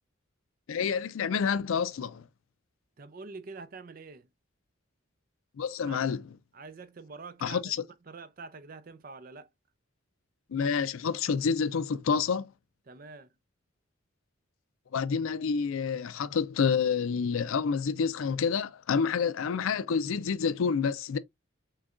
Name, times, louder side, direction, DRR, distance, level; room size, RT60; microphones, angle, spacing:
voice 1, 0.7-2.3 5.6-6.2 7.4-7.8 10.5-12.5 14.9-21.2, left 6 dB, 80° left, 0.4 m, -28 dB
voice 2, 3.0-4.3 5.9-6.0 6.5-7.7 8.1-9.5 12.9-13.3, right 4 dB, 45° right, 0.5 m, -45 dB
6.3 x 2.3 x 2.4 m
head